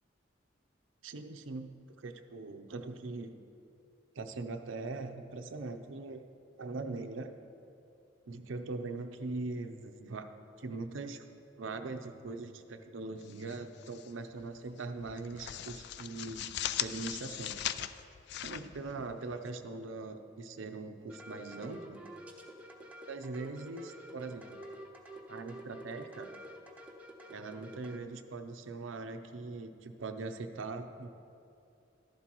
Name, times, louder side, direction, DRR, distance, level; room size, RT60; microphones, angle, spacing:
voice 1, 1.0-3.4 4.1-6.2 6.6-7.4 8.3-10.3 10.6-11.3 11.6-17.6 18.4-22.0 23.1-24.6 25.3-26.3 27.3-31.1, right 3 dB, 85° right, 7 dB, 0.6 m, -41 dB
sound 1, 13.2-14.1 14.4-14.6 15.0-19.5, left 11 dB, 60° left, 0.3 m, -39 dB
sound 2, 21.1-28.0, right 1 dB, 5° right, 0.8 m, -49 dB
13.0 x 11.5 x 3.0 m, 2.6 s
head